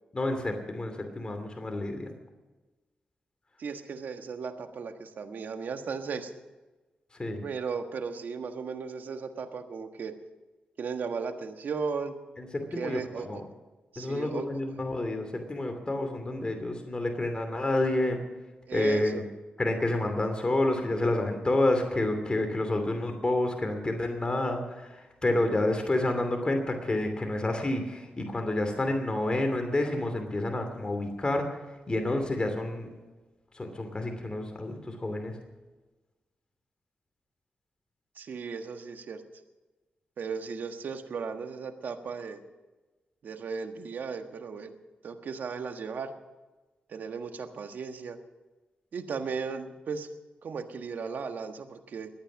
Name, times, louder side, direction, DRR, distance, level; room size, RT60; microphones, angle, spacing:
voice 1, 0.1-2.1 7.1-7.4 12.4-13.4 14.0-18.2 18.7-19.3 19.6-31.6 31.9-32.9 33.5-35.4, left 2 dB, 30° left, 4 dB, 2.7 m, -29 dB
voice 2, 3.6-6.3 7.4-10.1 10.8-12.1 12.8-13.4 13.9-14.5 18.7-19.2 38.2-39.2 40.2-42.4 43.2-44.7 45.0-46.1 46.9-48.2 48.9-50.1 50.4-52.1, right 5 dB, 70° right, 7 dB, 1.4 m, -36 dB
22.0 x 8.9 x 6.3 m, 1.2 s
cardioid pair, 60°, 3 cm